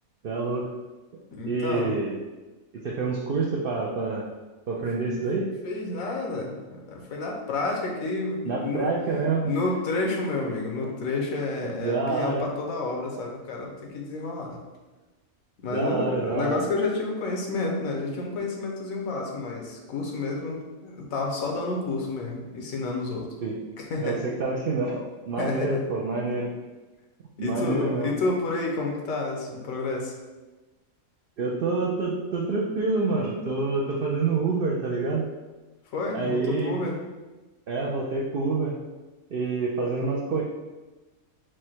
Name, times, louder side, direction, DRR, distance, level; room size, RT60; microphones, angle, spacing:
voice 1, 0.2-0.7 1.1-2.2 2.8-4.3 4.7-5.5 8.4-9.5 10.8-10.9 11.6-12.4 15.7-16.6 23.4-23.6 24.0-26.5 27.4-28.1 31.4-35.2 36.1-36.8 37.7-38.8 39.3-40.4, right 3 dB, 70° right, -2 dB, 0.5 m, -27 dB
voice 2, 1.3-1.9 4.8-4.9 5.6-8.9 9.4-14.6 15.6-23.3 23.9-24.2 25.4-25.8 27.4-30.1 35.9-37.0, left 3 dB, 75° left, 0 dB, 1.2 m, -30 dB
4.7 x 2.1 x 4.3 m, 1.2 s
omnidirectional pair, 1.5 m